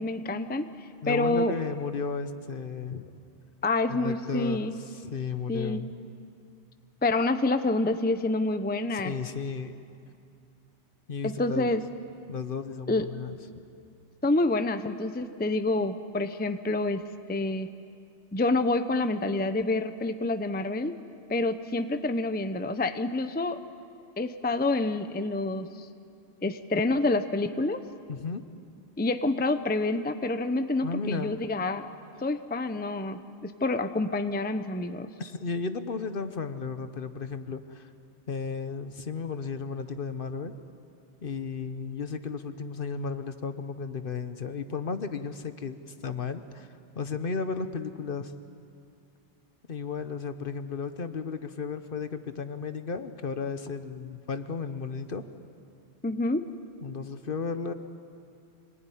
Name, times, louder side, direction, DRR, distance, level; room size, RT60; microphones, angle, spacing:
voice 1, 0.0-1.5 3.6-4.7 5.5-5.8 7.0-9.1 11.2-11.8 12.9-13.1 14.2-17.0 17.3-17.7 18.3-21.0 21.3-23.6 24.2-25.9 26.4-27.8 29.0-31.9 32.2-35.1 56.0-56.5, left 2 dB, 10° left, 10 dB, 0.6 m, -27 dB
voice 2, 1.0-3.1 3.9-5.9 8.9-9.8 11.1-11.8 12.3-13.6 28.1-28.4 30.8-31.4 35.2-37.9 38.3-40.5 41.2-46.7 46.9-48.3 49.7-55.2 56.8-57.7, left 5 dB, 50° left, 10 dB, 1.2 m, -34 dB
26.0 x 19.5 x 9.9 m, 2.5 s
omnidirectional pair, 1.2 m